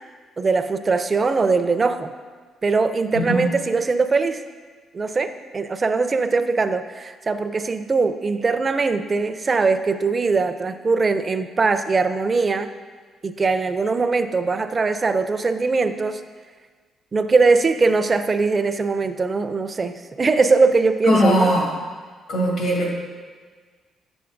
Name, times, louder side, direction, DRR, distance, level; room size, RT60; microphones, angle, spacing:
voice 1, 0.4-2.1 2.6-4.4 4.9-12.7 13.2-16.2 17.1-21.5, right 4 dB, 35° right, 10 dB, 0.4 m, -21 dB
voice 2, 3.1-3.5 21.1-21.7 22.3-22.9, equal, 80° left, -3 dB, 2.0 m, -19 dB
7.7 x 7.0 x 2.5 m, 1.5 s
cardioid pair, 90°, 0 cm